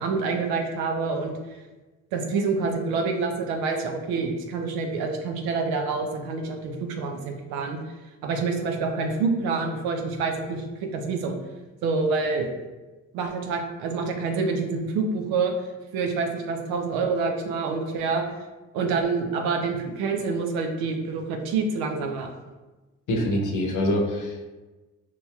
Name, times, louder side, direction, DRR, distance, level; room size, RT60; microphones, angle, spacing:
voice 1, 0.0-1.4 2.1-7.8 8.2-11.4 11.8-12.5 13.1-15.5 15.9-18.2 18.7-22.3, right 4 dB, 75° right, 3 dB, 0.6 m, -27 dB
voice 2, 23.1-24.5, left 1 dB, 55° left, 1 dB, 0.8 m, -25 dB
4.3 x 2.8 x 2.3 m, 1.2 s
hypercardioid pair, 50°, 37 cm